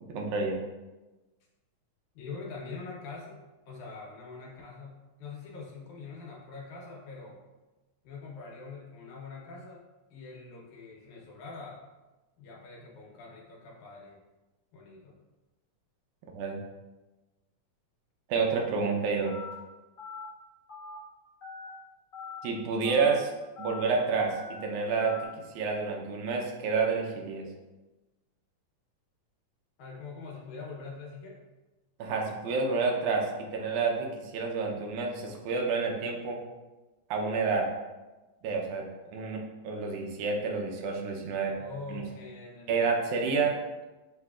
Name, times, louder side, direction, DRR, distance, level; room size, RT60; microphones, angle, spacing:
voice 1, 0.1-0.6 16.4-16.6 18.3-19.3 22.4-23.3 23.6-25.3 25.6-27.5 32.0-36.4 37.1-37.7 38.4-41.6 41.9-42.0 42.7-43.6, right 4 dB, 80° right, 1 dB, 2.0 m, -29 dB
voice 2, 2.2-7.4 8.0-9.8 10.1-11.8 12.4-14.2 14.7-15.2 29.8-31.4 41.6-42.9, left 4 dB, 75° left, -2 dB, 2.2 m, -44 dB
Telephone, 19.3-19.5 20.0-20.2 20.7-21.0 21.4-21.7 22.1-22.4 22.8-23.1 23.6-23.8 24.3-24.5 25.0-25.3, left 5 dB, 55° left, 0.9 m, -42 dB
7.7 x 2.9 x 2.3 m, 1.1 s
omnidirectional pair, 3.6 m